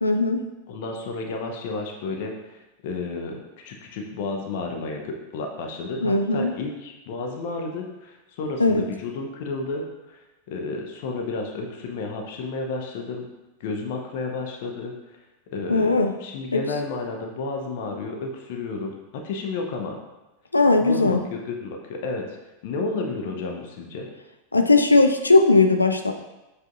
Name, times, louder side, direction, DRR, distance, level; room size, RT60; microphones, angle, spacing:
voice 1, 0.0-0.4 6.0-6.5 8.6-8.9 15.7-16.2 16.5-16.6 20.5-21.2 24.5-26.1, left 3 dB, 80° left, 5 dB, 0.3 m, -18 dB
voice 2, 0.7-2.3 2.8-10.2 10.5-13.3 13.6-14.9 15.5-20.0 20.8-22.3 22.6-24.1, left 3 dB, 50° left, 2 dB, 0.6 m, -31 dB
7.3 x 2.6 x 2.5 m, 1.0 s
figure-of-eight pair, 90°, 0 cm